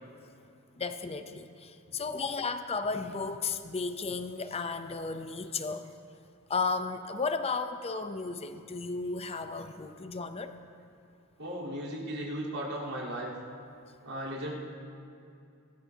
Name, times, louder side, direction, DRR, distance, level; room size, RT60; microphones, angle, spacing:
voice 1, 0.8-5.9 6.5-10.5, left 4 dB, 30° left, 9 dB, 0.6 m, -34 dB
voice 2, 11.4-13.3 14.0-14.5, equal, 90° right, -7 dB, 3.8 m, -36 dB
23.0 x 13.0 x 2.8 m, 2.6 s
head